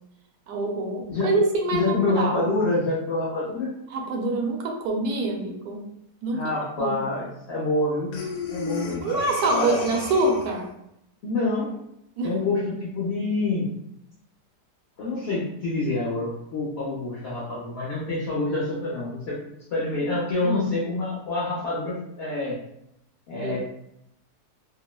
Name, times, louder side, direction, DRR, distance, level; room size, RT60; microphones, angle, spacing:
voice 1, 0.5-2.5 3.9-5.9 6.2-6.4 6.8-7.0 8.9-10.7 12.2-12.3 20.4-20.7 23.4-23.6, right 2 dB, 75° right, 1 dB, 1.1 m, -25 dB
voice 2, 1.7-3.7 6.3-8.1 8.5-9.1 9.5-9.9 11.2-11.8 12.2-13.7 15.0-19.4 19.7-22.6 23.3-23.6, left 2 dB, 55° left, -8 dB, 0.8 m, -27 dB
Breathing, 8.1-10.7, left 4 dB, 75° left, 1.1 m, -34 dB
2.9 x 2.0 x 2.2 m, 0.79 s
omnidirectional pair, 1.8 m